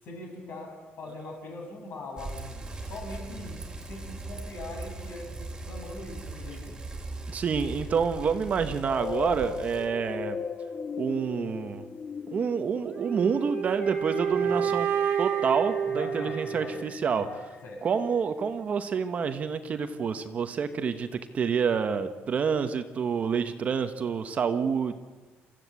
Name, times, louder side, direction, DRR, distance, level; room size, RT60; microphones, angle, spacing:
voice 1, 0.0-6.8 14.4-14.8 15.9-17.9, left 2 dB, 55° left, 1 dB, 7.1 m, -42 dB
Bicycle, 2.2-9.9, right 3 dB, 15° right, 2.9 m, -39 dB
voice 2, 7.3-10.4 11.0-11.9 12.3-14.9 15.2-17.3 17.8-25.0, right 6 dB, 35° right, 8 dB, 1.1 m, -28 dB
sound 1, 8.8-17.8, left 6 dB, 25° left, 0.7 m, -39 dB
sound 2, 12.9-17.0, right 8 dB, 60° right, 1.2 m, -29 dB
28.0 x 15.0 x 8.3 m, 1.4 s
cardioid pair, 180°, 4 cm